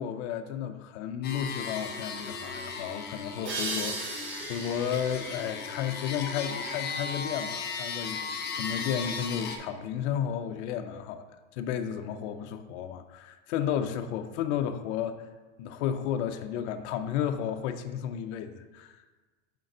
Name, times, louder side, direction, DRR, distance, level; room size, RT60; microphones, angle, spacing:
voice 1, 0.0-11.2 11.5-15.3 15.6-19.0, left 9 dB, 65° left, 8 dB, 0.6 m, -33 dB
sound 1, 1.2-9.6, left 5 dB, 25° left, 0.6 m, -36 dB
sound 2, 3.4-6.8, right 3 dB, 30° right, 1.6 m, -38 dB
5.2 x 3.8 x 5.3 m, 1.3 s
supercardioid pair, 130°, 37 cm